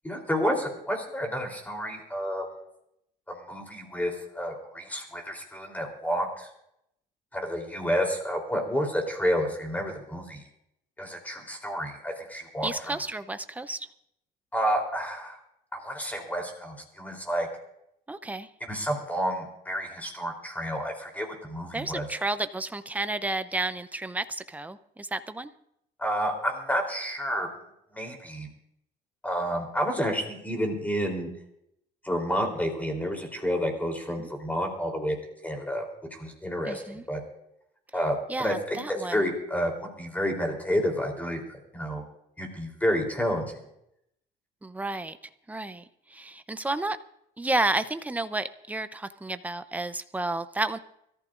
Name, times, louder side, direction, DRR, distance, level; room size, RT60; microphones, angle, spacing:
voice 1, 0.0-2.5 3.3-6.5 7.3-10.4 11.0-13.0 14.5-15.4 15.7-17.5 18.7-22.1 26.0-27.5 27.9-28.5 29.2-31.3 32.0-35.2 35.4-35.9 36.2-37.2 37.9-42.0 42.4-43.6, equal, 10° left, 3 dB, 3.5 m, -30 dB
voice 2, 12.6-13.9 18.1-18.5 21.7-25.5 34.2-34.3 36.7-37.0 38.3-39.2 44.6-45.2 45.5-45.8 46.1-47.0 47.4-50.8, right 2 dB, 10° right, 11 dB, 0.7 m, -31 dB
24.5 x 14.0 x 2.6 m, 0.78 s
cardioid pair, 110°, 17 cm